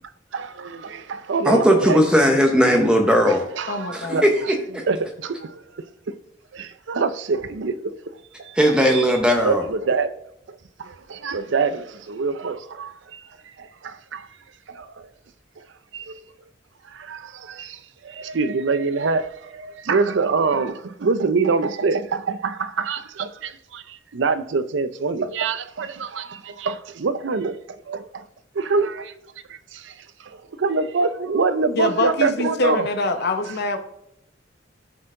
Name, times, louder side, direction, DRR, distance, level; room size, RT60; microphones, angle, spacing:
voice 1, 0.3-2.0 2.3-2.4 2.7-2.8 3.3-4.5 4.9-5.6 6.1-6.2 6.5-8.0 8.4-8.6 8.9-9.1 9.4-10.1 10.5-13.2 13.6-14.3 14.7-15.1 15.6-15.7 15.9-16.2 16.9-28.3 28.5-29.1 29.5-29.9 30.2-32.9, right 4 dB, 70° right, 0.5 m, -25 dB
voice 2, 1.4-3.4 3.9-4.8 8.6-9.6, equal, 5° right, 0.8 m, -18 dB
voice 3, 3.7-4.2 31.8-33.8, left 2 dB, 60° left, 0.9 m, -24 dB
13.0 x 4.4 x 3.7 m
head